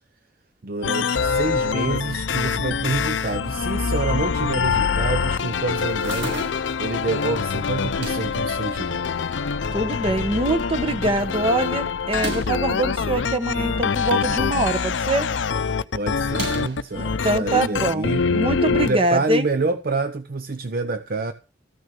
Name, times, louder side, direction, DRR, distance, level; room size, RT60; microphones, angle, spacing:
voice 1, 0.6-6.4 6.8-9.1 15.9-18.3 18.7-21.3, right 3 dB, 50° right, 0.7 m, -27 dB
sound 1, 0.8-18.9, left 5 dB, 75° left, 0.6 m, -24 dB
sound 2, 5.8-6.8 7.8-8.4 9.2-9.8 10.2-10.3 10.5-10.6 12.0-12.7 13.7-14.5 14.8-15.1 16.2-16.9, right 2 dB, 80° right, 7.0 m, -34 dB
voice 2, 9.7-15.3 16.9-19.5, right 2 dB, 30° right, 1.4 m, -24 dB
14.0 x 6.5 x 6.7 m
head